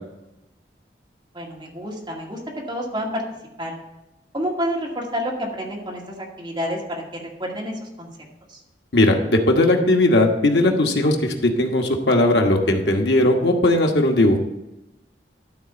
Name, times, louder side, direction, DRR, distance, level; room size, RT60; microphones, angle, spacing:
voice 1, 1.3-2.4 2.7-3.2 3.6-3.7 4.3-8.1 8.5-8.6, equal, 25° right, -3 dB, 2.1 m, -29 dB
voice 2, 8.9-14.4, left 1 dB, 85° left, 2 dB, 1.3 m, -18 dB
12.5 x 4.2 x 7.1 m, 0.95 s
head